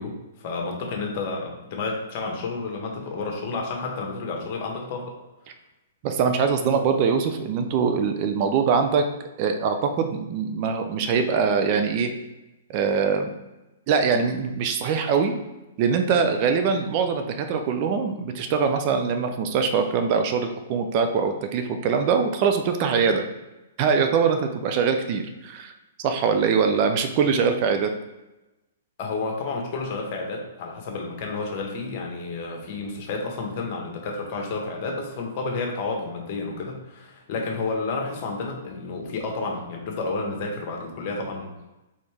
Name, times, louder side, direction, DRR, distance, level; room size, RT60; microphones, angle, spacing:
voice 1, 0.0-5.2 29.0-41.7, left 3 dB, 45° left, 1 dB, 1.3 m, -31 dB
voice 2, 6.0-9.0 9.4-12.1 12.7-13.3 13.9-15.3 15.8-23.2 23.8-25.7 26.0-27.9, right 6 dB, 40° right, 6 dB, 0.5 m, -23 dB
4.2 x 3.5 x 3.4 m, 1.0 s
hypercardioid pair, 125°, 0 cm